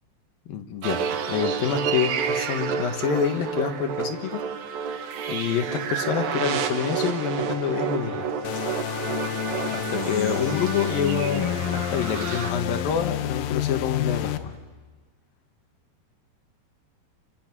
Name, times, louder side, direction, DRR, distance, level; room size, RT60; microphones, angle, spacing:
voice 1, 0.5-1.0 1.3-4.4 5.3-8.3 9.7-14.6, left 7 dB, 65° left, 6 dB, 2.7 m, -27 dB
sound 1, 0.8-12.5, right 7 dB, 80° right, 1.6 m, -30 dB
Wind instrument woodwind instrument, 6.0-11.7, left 2 dB, 10° left, 1.3 m, -38 dB
sound 2, 8.4-14.4, left 12 dB, 80° left, 2.0 m, -29 dB
29.5 x 25.0 x 6.1 m, 1.4 s
omnidirectional pair, 5.3 m